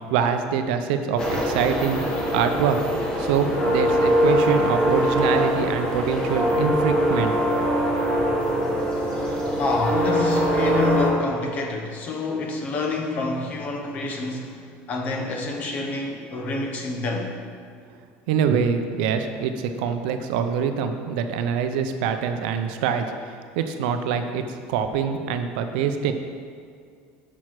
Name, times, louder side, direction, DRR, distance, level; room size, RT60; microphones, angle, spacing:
voice 1, 0.1-2.8 3.2-7.3 18.3-23.1 23.6-26.1, right 7 dB, 90° right, 7 dB, 0.6 m, -24 dB
sound 1, 1.2-11.1, equal, 15° left, 1.2 m, -23 dB
voice 2, 9.6-14.6 14.9-17.3, left 3 dB, 30° left, 1 dB, 0.9 m, -27 dB
6.1 x 5.9 x 4.7 m, 2.2 s
cardioid pair, 165°, 5 cm